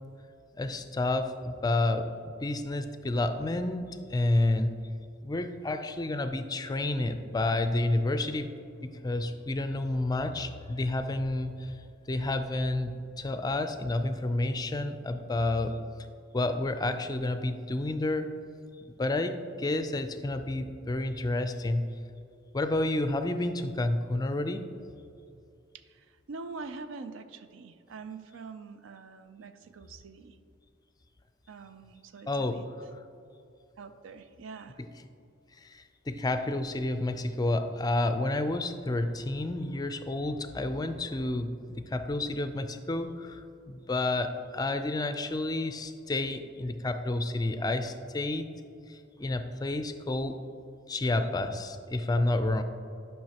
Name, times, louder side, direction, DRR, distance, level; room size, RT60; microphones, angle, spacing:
voice 1, 0.6-4.7 5.2-8.5 8.8-11.8 12.1-15.8 16.3-18.3 19.0-21.9 22.5-24.6 32.3-32.6 35.5-48.5 48.9-50.4 50.9-52.6, left 2 dB, 20° left, 9 dB, 0.4 m, -30 dB
voice 2, 25.9-30.4 31.5-32.6 33.8-34.8 51.1-51.3 52.1-52.2, right 4 dB, 80° right, 10 dB, 0.4 m, -44 dB
10.5 x 5.6 x 2.9 m, 2.5 s
head